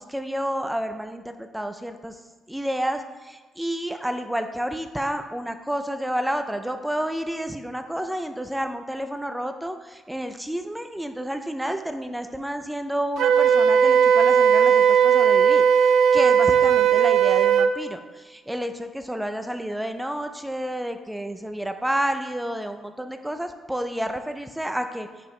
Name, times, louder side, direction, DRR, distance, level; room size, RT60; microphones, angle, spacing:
voice 1, 0.0-2.2 2.5-25.1, equal, 5° right, 7 dB, 0.5 m, -30 dB
Wind instrument woodwind instrument, 13.2-17.7, right 7 dB, 75° right, 0.5 m, -17 dB
10.0 x 4.7 x 3.2 m, 1.3 s
cardioid pair, 90°, 0 cm